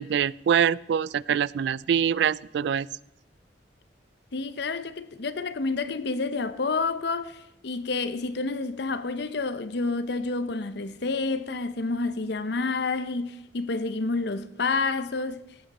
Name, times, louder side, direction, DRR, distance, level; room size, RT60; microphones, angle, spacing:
voice 1, 0.0-2.9, right 8 dB, 65° right, 0.3 m, -24 dB
voice 2, 4.3-15.4, left 3 dB, 65° left, 0.7 m, -29 dB
17.0 x 8.5 x 4.2 m
head